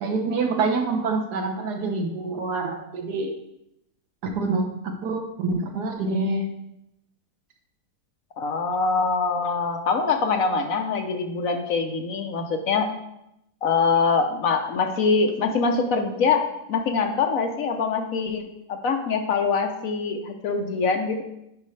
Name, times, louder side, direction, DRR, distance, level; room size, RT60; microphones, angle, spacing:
voice 1, 0.0-3.3 4.2-6.4, right 3 dB, 75° right, 4 dB, 1.5 m, -26 dB
voice 2, 8.4-12.9 13.6-21.2, left 4 dB, 65° left, 5 dB, 1.1 m, -24 dB
9.3 x 5.3 x 3.2 m, 0.82 s
omnidirectional pair, 1.7 m